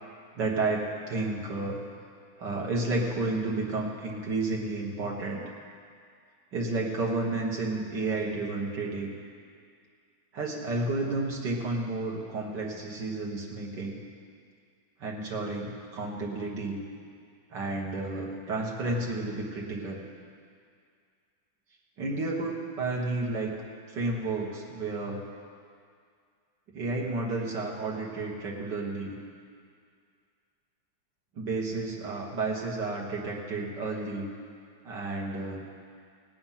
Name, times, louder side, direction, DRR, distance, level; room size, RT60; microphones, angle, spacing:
voice 1, 0.4-1.8 2.4-5.4 6.5-9.1 10.3-14.0 15.0-16.8 17.5-20.0 22.0-23.5 23.9-25.3 26.7-29.2 31.4-34.3 34.8-35.6, right 2 dB, 65° right, -2 dB, 1.9 m, -31 dB
18.0 x 8.7 x 5.7 m, 2.2 s
omnidirectional pair, 2.1 m